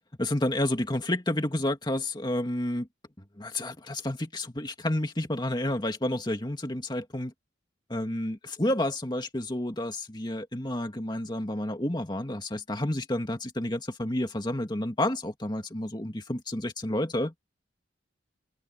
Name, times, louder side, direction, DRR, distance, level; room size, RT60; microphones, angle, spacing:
voice 1, 0.2-2.9 3.4-7.3 7.9-17.3, left 1 dB, 25° left, 2.1 m, -30 dB
head